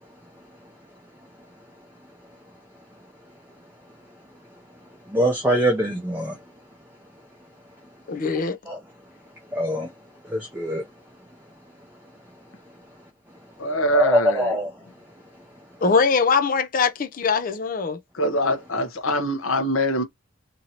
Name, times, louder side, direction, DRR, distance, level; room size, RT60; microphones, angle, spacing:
voice 1, 5.1-6.4 8.7-8.8 9.5-9.9 10.3-10.8 13.9-14.7, equal, 10° right, 0.6 m, -23 dB
voice 2, 8.1-8.6 15.8-18.0, left 5 dB, 40° left, 0.4 m, -22 dB
voice 3, 13.6-14.6 18.1-20.0, equal, 80° left, 0.9 m, -23 dB
2.9 x 2.6 x 2.8 m
head